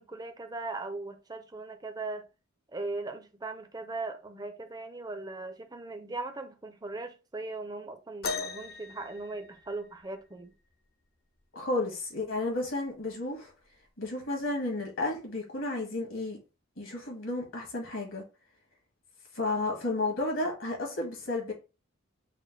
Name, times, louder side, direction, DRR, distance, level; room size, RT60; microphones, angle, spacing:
voice 1, 0.0-2.3 2.7-10.5, right 3 dB, 20° right, 0.5 m, -39 dB
sound 1, 8.2-10.1 11.8-11.9 12.7-12.9 13.8-13.9, left 4 dB, 45° left, 0.6 m, -38 dB
voice 2, 11.5-13.5 14.0-16.4 16.8-18.2 19.3-21.5, left 2 dB, 70° left, 1.8 m, -32 dB
4.9 x 2.1 x 4.5 m
head